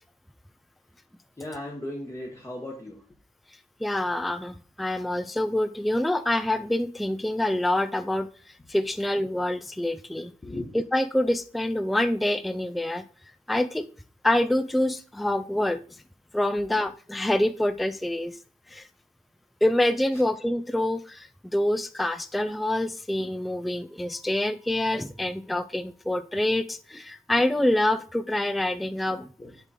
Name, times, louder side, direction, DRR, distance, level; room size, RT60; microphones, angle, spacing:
voice 1, 1.4-3.0 10.4-10.7 20.1-20.2 29.4-29.5, left 1 dB, 20° left, -1 dB, 1.1 m, -36 dB
voice 2, 3.8-8.3 8.7-10.3 10.7-13.0 13.5-13.9 14.2-15.8 16.3-18.4 18.7-18.8 19.6-29.3, left 1 dB, ahead, 11 dB, 0.3 m, -26 dB
8.0 x 3.7 x 4.1 m, 0.42 s
wide cardioid pair, 140°, 15 cm